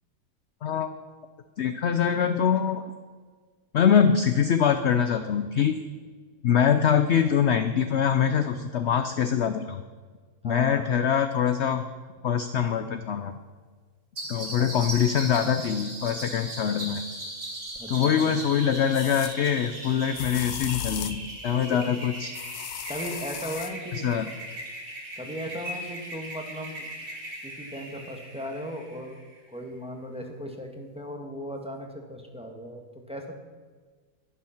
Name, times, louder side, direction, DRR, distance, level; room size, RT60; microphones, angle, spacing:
voice 1, 0.6-0.9 1.6-2.8 3.7-5.7 6.4-9.8 10.4-11.8 12.2-13.3 14.3-17.0 17.9-22.3 24.0-24.2, left 8 dB, 60° left, 8 dB, 0.8 m, -24 dB
voice 2, 10.4-10.8 14.6-14.7 17.8-18.8 21.7-21.8 22.9-24.1 25.2-26.9 27.4-29.2 29.5-33.3, equal, 5° right, 2 dB, 1.5 m, -37 dB
sound 1, 14.2-29.4, right 1 dB, 50° right, 2.9 m, -39 dB
sound 2, 17.8-17.9 18.9-19.4 20.1-21.3 22.3-23.7, left 11 dB, 80° left, 1.2 m, -36 dB
11.5 x 11.0 x 5.8 m, 1.5 s
omnidirectional pair, 1.6 m